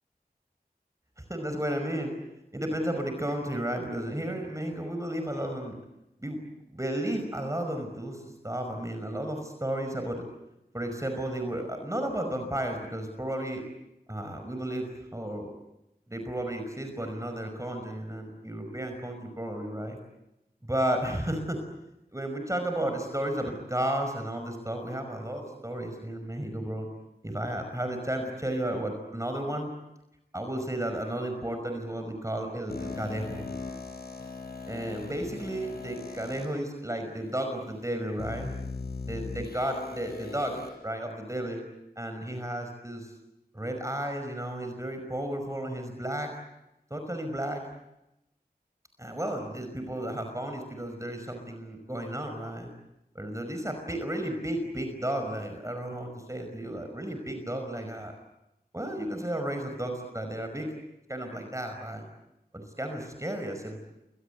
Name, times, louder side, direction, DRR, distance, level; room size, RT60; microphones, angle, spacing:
voice 1, 1.2-2.1 2.5-5.8 6.2-6.4 6.7-10.2 10.7-13.6 14.1-15.5 16.1-20.0 20.6-21.6 22.1-26.9 27.2-29.7 30.3-33.5 34.7-38.5 39.0-41.6 42.0-43.1 43.5-46.4 46.9-47.6 49.0-52.7 53.1-58.1 58.7-60.7 61.1-62.0 62.5-63.8, right 1 dB, 20° right, 5 dB, 5.3 m, -33 dB
sound 1, 32.7-36.5 37.2-37.3 38.2-40.7, left 3 dB, 85° left, 6.9 m, -39 dB
29.5 x 24.0 x 8.2 m, 0.91 s
wide cardioid pair, 55°, 16 cm